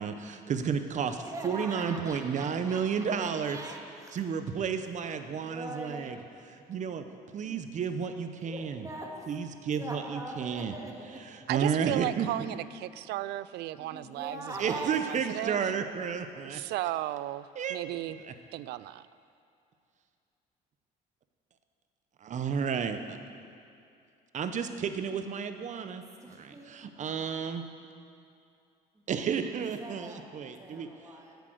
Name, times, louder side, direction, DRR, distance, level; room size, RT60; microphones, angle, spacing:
voice 1, 0.0-3.6 4.1-6.2 6.7-7.0 7.3-8.9 9.3-10.7 11.3-12.3 14.6-16.6 17.6-17.8 18.1-18.3 22.2-23.2 24.3-26.0 26.3-27.6 29.1-30.9, right 6 dB, 45° right, 8 dB, 0.9 m, -32 dB
voice 2, 1.2-4.1 5.2-6.1 7.4-7.6 8.2-9.1 9.7-11.2 13.8-14.9 26.2-26.7 28.9-29.0 29.4-30.3 30.6-31.4, right 2 dB, 20° right, 0 dB, 1.9 m, -42 dB
voice 3, 11.5-15.6 16.4-18.2 18.5-19.1, right 15 dB, 80° right, 16 dB, 0.4 m, -35 dB
10.5 x 8.2 x 7.9 m, 2.5 s
cardioid pair, 110°, 17 cm